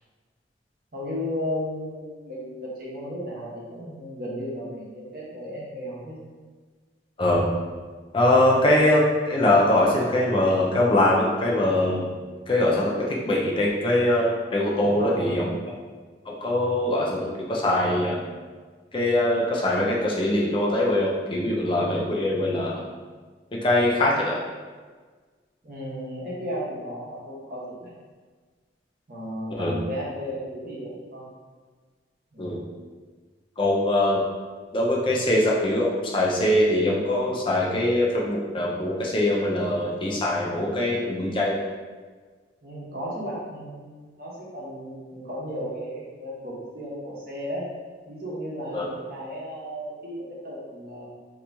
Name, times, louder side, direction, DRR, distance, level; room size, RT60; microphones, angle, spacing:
voice 1, 0.9-6.2 14.8-15.5 25.6-27.9 29.1-31.2 32.3-32.5 42.6-47.7 48.0-51.1, equal, 50° right, -6 dB, 1.0 m, -34 dB
voice 2, 8.1-12.1 12.5-15.5 16.3-18.2 18.9-22.8 23.6-24.4 29.6-29.8 32.4-32.6 33.6-34.2 34.7-41.6 48.7-48.9, left 1 dB, 25° left, -4 dB, 0.4 m, -22 dB
2.9 x 2.7 x 3.4 m, 1.5 s
head